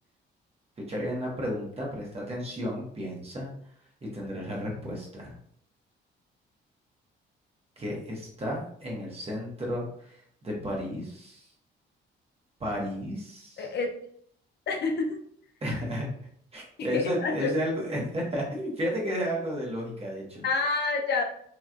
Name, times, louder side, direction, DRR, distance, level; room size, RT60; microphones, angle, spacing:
voice 1, 0.9-3.5 4.0-5.3 7.8-11.4 12.6-13.6 15.6-16.1 16.5-20.4, equal, 30° right, -3 dB, 1.2 m, -33 dB
voice 2, 13.6-13.9 14.7-15.2 16.8-17.5 20.4-21.2, left 4 dB, 55° left, 3 dB, 0.6 m, -28 dB
3.1 x 3.0 x 2.5 m, 0.66 s
cardioid pair, 90°, 20 cm